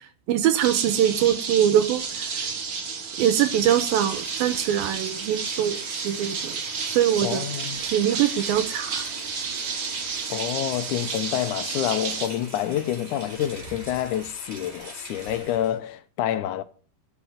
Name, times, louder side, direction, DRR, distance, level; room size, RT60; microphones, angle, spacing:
voice 1, 0.3-2.5 3.2-6.6 6.9-7.5 7.8-9.1, right 10 dB, 80° right, 2.6 m, -23 dB
sound 1, 0.6-12.3, right 5 dB, 50° right, 1.5 m, -31 dB
Rain, 3.2-15.8, right 1 dB, 15° right, 3.6 m, -43 dB
voice 2, 7.2-7.8 10.3-16.6, left 11 dB, 75° left, 1.9 m, -28 dB
13.0 x 6.0 x 7.1 m
omnidirectional pair, 4.3 m